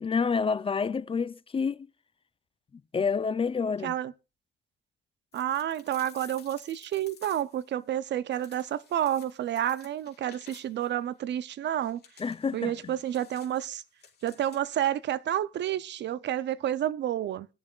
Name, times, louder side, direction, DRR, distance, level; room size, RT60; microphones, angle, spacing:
voice 1, 0.0-1.9 2.9-3.9 12.2-12.9, left 5 dB, 25° left, 0.5 m, -28 dB
sound 1, 5.3-7.7 8.3-10.9 11.8-14.8, left 8 dB, 55° left, 1.9 m, -54 dB
voice 2, 5.3-12.0 12.5-13.8 14.2-17.5, right 11 dB, 60° right, 0.5 m, -30 dB
21.5 x 7.2 x 2.4 m
cardioid pair, 90°, 20 cm